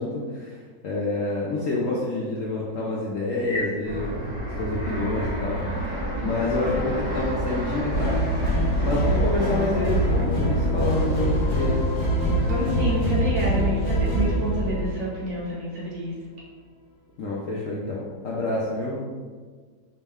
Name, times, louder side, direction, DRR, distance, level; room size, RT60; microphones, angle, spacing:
voice 1, 0.0-4.2 4.6-5.6 6.2-8.2 8.8-11.8 17.2-19.0, left 2 dB, 70° left, -5 dB, 0.7 m, -27 dB
Fixed-wing aircraft airplane, 3.9-12.5, equal, 60° right, 0.4 m, -31 dB
sound 1, 7.9-15.3, right 1 dB, 50° left, 1.1 m, -24 dB
voice 2, 12.5-16.1, equal, 80° right, -6 dB, 1.9 m, -28 dB
5.0 x 2.1 x 3.5 m, 1.5 s
omnidirectional pair, 2.0 m